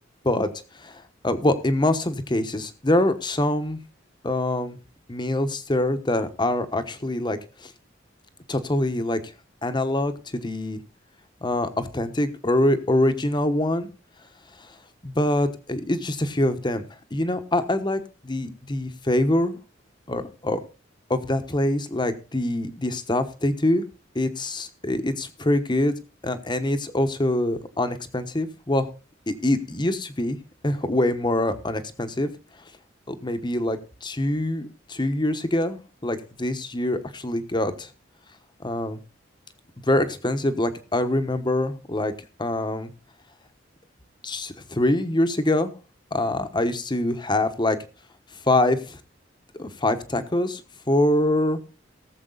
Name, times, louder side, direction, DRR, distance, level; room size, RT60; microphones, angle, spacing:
voice 1, 0.8-3.8 4.2-4.8 5.1-7.7 8.5-9.3 9.6-10.8 11.4-13.9 15.0-16.8 17.1-19.6 20.1-20.6 21.1-23.9 24.1-25.9 26.2-28.9 29.3-30.4 30.6-32.3 33.1-37.9 38.6-39.0 39.9-42.1 42.4-42.9 44.2-45.7 46.1-47.8 48.4-49.0 49.6-50.6 50.9-51.6, left 1 dB, 25° left, 10 dB, 1.1 m, -24 dB
17.5 x 7.5 x 3.9 m, 0.34 s
head